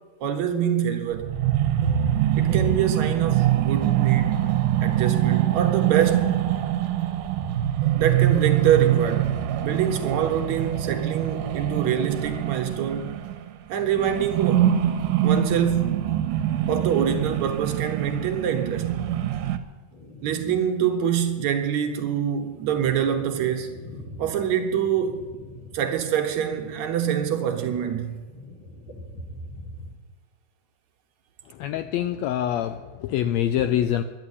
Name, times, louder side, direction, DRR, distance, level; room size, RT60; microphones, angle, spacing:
voice 1, 0.2-1.3 2.4-4.5 4.8-6.5 8.0-9.4 9.6-13.1 13.7-14.8 15.2-16.1 16.7-18.9 20.2-23.8 24.2-25.2 25.7-28.2, right 9 dB, 70° right, 2.4 m, -25 dB
sound 1, 1.1-13.6 13.8-19.6, right 11 dB, 85° right, 2.4 m, -24 dB
sound 2, 19.9-20.8 21.2-21.3 22.0-29.9, left 1 dB, 40° left, 2.5 m, -44 dB
voice 2, 31.5-34.0, left 11 dB, 80° left, 1.6 m, -25 dB
11.0 x 10.5 x 9.7 m
omnidirectional pair, 3.6 m